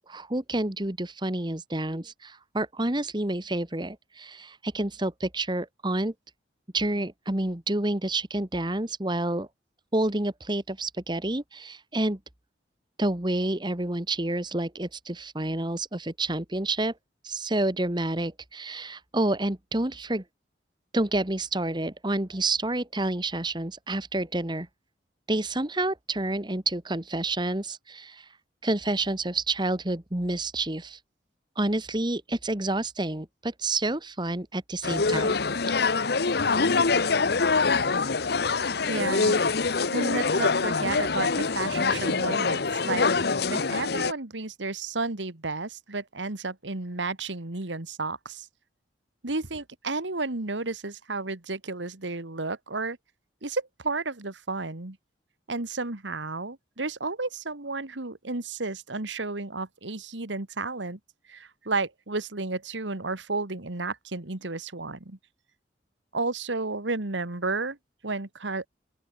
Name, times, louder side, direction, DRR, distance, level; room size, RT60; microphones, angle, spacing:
voice 1, 0.1-6.1 6.7-9.5 9.9-12.2 13.0-16.9 17.2-20.2 20.9-24.7 25.3-28.2 28.6-31.0 31.6-35.3, right 2 dB, 25° right, 1.6 m, -29 dB
sound 1, 34.8-44.1, left 4 dB, 60° left, 0.9 m, -25 dB
voice 2, 38.9-39.5 39.9-48.5 49.2-53.0 53.4-55.0 55.5-61.0 61.3-65.2 66.1-67.8 68.0-68.6, right 3 dB, 85° right, 2.0 m, -32 dB
open air
head